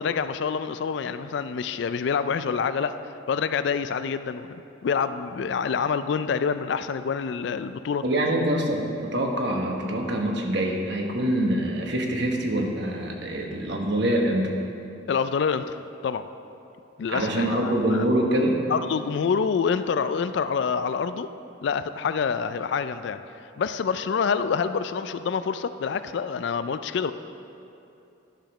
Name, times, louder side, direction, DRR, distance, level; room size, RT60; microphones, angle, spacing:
voice 1, 0.0-3.0 3.3-8.0 15.1-15.8 16.0-16.2 17.0-18.0 18.7-21.3 21.6-23.2 23.6-27.1, left 6 dB, 60° left, 12 dB, 0.3 m, -27 dB
voice 2, 8.0-14.5 17.1-18.6, right 1 dB, 55° right, 1 dB, 1.1 m, -25 dB
11.5 x 5.0 x 6.0 m, 2.7 s
head